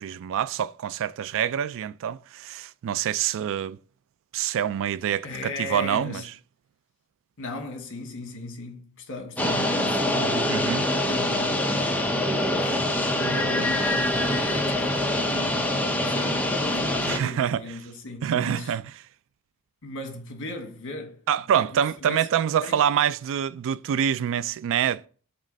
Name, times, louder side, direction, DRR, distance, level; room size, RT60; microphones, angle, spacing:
voice 1, 0.0-3.8 4.3-6.2 10.5-10.9 17.1-17.6 18.2-18.8 21.3-25.1, right 9 dB, 60° right, 0.3 m, -26 dB
voice 2, 5.2-6.3 7.4-10.6 11.1-11.9 12.5-18.8 19.8-21.2 21.6-21.7 22.0-22.3 22.6-22.9, left 2 dB, 60° left, 1.4 m, -37 dB
sound 1, 9.4-17.2, left 1 dB, 5° left, 0.8 m, -24 dB
7.4 x 3.2 x 5.1 m
head